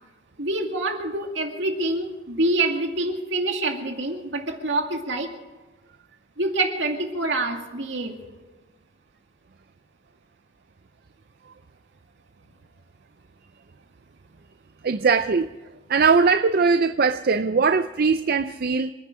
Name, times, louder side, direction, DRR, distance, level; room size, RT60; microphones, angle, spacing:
voice 1, 0.4-5.3 6.4-8.2, right 2 dB, 70° right, 2.3 m, -26 dB
voice 2, 14.8-15.5 15.9-18.9, right 5 dB, 50° right, 0.5 m, -20 dB
27.5 x 10.5 x 5.0 m
head